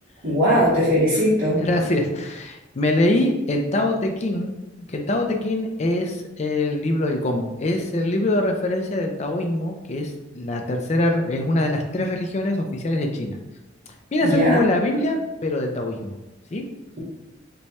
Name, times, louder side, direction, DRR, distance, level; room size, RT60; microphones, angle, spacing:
voice 1, 0.2-1.6 14.2-14.6, equal, 50° right, -10 dB, 1.0 m, -19 dB
voice 2, 1.6-4.5 4.9-13.4 14.1-16.1 16.5-16.6, left 1 dB, 35° left, 4 dB, 0.4 m, -23 dB
3.1 x 2.2 x 4.1 m, 1.0 s
head